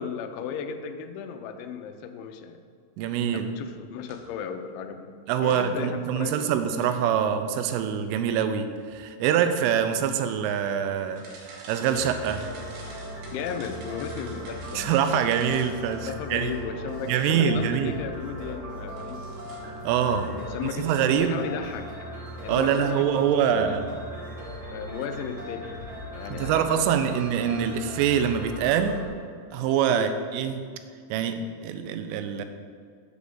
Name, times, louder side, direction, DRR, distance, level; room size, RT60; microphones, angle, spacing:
voice 1, 0.0-2.6 3.3-5.1 5.4-6.9 13.3-14.9 16.1-19.2 20.2-21.9 22.4-23.8 24.7-25.9 26.1-27.2 29.9-30.1, left 7 dB, 80° left, 6 dB, 2.8 m, -35 dB
voice 2, 3.0-3.5 5.3-12.5 14.7-16.5 17.1-17.9 19.8-20.3 20.8-21.4 22.5-23.9 26.3-29.0 29.5-30.6 31.1-32.4, right 8 dB, 85° right, 8 dB, 3.1 m, -25 dB
sound 1, 4.0-4.4 5.5-5.7 6.8-7.1 8.8-9.4 9.9-10.1 10.5-16.1 18.9-19.8 20.1-20.3 20.6-21.0, right 2 dB, 65° right, 3.0 m, -48 dB
sound 2, 11.9-29.1, equal, 40° right, 2.1 m, -38 dB
8.2 x 4.9 x 6.8 m, 2.1 s
omnidirectional pair, 5.6 m